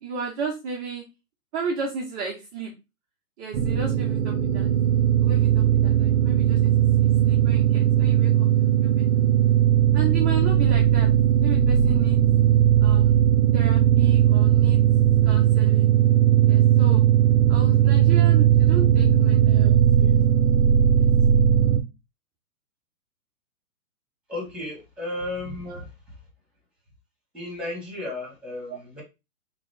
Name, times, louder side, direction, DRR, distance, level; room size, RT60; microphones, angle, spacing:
voice 1, 0.0-1.0 1.5-2.7 3.4-4.7 5.2-6.7 7.0-9.0 9.9-11.1 11.4-12.2 12.8-13.2 13.5-14.8 15.2-15.9 16.5-17.0 17.5-20.2 21.0-21.1 25.7-25.8 28.7-28.8, right 5 dB, 20° right, 0.6 m, -34 dB
sound 1, 3.5-21.8, right 10 dB, 60° right, 0.7 m, -18 dB
voice 2, 24.3-25.9 27.3-29.0, left 2 dB, ahead, 1.4 m, -34 dB
3.6 x 2.8 x 3.3 m
hypercardioid pair, 130°, 44 cm